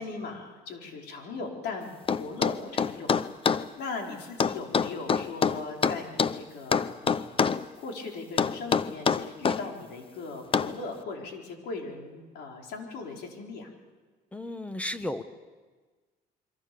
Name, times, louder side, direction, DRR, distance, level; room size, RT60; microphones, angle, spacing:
voice 1, 0.0-7.5 7.8-13.7, left 3 dB, 80° left, 1 dB, 4.7 m, -39 dB
sound 1, 2.1-3.7 4.4-6.4 6.7-7.6 8.4-9.6 10.5-10.8, left 6 dB, 30° left, 0.7 m, -25 dB
voice 2, 14.3-15.2, left 1 dB, 10° left, 10 dB, 1.5 m, -34 dB
27.0 x 24.0 x 7.0 m, 1.4 s
cardioid pair, 110°, 17 cm